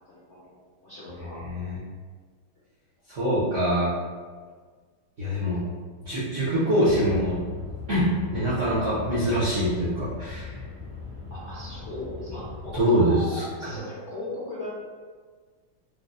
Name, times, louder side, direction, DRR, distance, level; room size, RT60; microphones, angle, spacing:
voice 1, 0.0-1.4 11.3-14.7, left 2 dB, 60° left, -10 dB, 0.7 m, -37 dB
voice 2, 1.4-1.8 3.1-3.9 5.2-5.6 6.0-7.4 7.9-10.5 12.7-13.7, equal, 65° right, -10 dB, 0.7 m, -24 dB
sound 1, 6.8-12.8, left 4 dB, 85° left, 1.8 m, -38 dB
4.9 x 2.0 x 2.5 m, 1.5 s
omnidirectional pair, 2.3 m